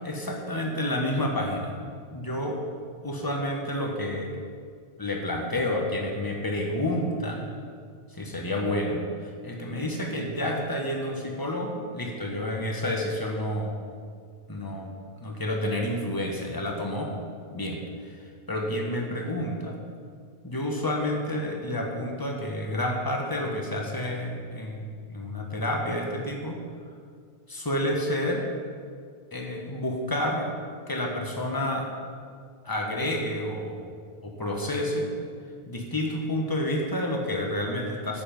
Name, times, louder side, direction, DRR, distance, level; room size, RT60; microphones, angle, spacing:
voice 1, 0.0-1.8 2.1-2.6 3.0-4.3 5.0-7.5 8.1-13.8 14.5-14.9 15.2-17.1 17.5-18.2 18.5-19.8 20.4-24.8 25.1-26.6 27.5-28.5 29.3-30.5 30.9-31.9 32.6-33.8 34.2-35.1 35.7-38.2, left 1 dB, 20° left, 0 dB, 1.3 m, -29 dB
9.5 x 8.0 x 5.3 m, 2.1 s
omnidirectional pair, 1.1 m